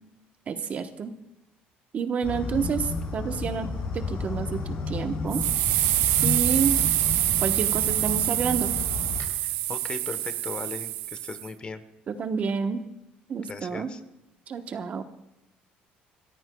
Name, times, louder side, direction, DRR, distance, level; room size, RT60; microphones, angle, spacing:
voice 1, 0.5-1.1 1.9-5.4 6.2-6.8 7.4-8.8 12.1-12.9 13.3-13.9 14.5-15.0, right 6 dB, 40° right, 7 dB, 1.0 m, -29 dB
sound 1, 2.2-9.2, left 4 dB, 55° left, 6.4 m, -32 dB
sound 2, 5.3-11.5, right 15 dB, 90° right, 0.6 m, -26 dB
voice 2, 9.7-11.8 13.5-14.0, left 4 dB, 30° left, 10 dB, 1.1 m, -37 dB
27.5 x 14.0 x 2.3 m, 0.94 s
cardioid pair, 115°, 4 cm